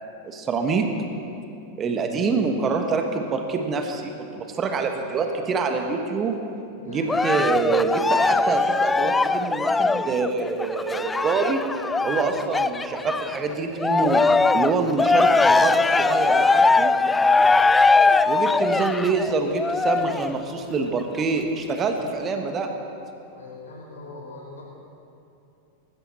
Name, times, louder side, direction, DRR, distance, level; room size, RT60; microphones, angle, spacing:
voice 1, 0.2-0.9 1.8-6.4 6.8-11.7 12.0-14.2 14.5-16.9 18.3-22.7, right 4 dB, 25° right, 5 dB, 1.4 m, -25 dB
voice 2, 6.8-7.1 12.0-12.2 16.7-17.6 23.3-24.6, left 3 dB, 65° left, -2 dB, 4.5 m, -42 dB
Cheering, 7.1-13.4 13.8-20.4 21.0-21.1, left 3 dB, 10° left, 0.3 m, -20 dB
20.0 x 15.0 x 4.2 m, 2.8 s
figure-of-eight pair, 90°, 0 cm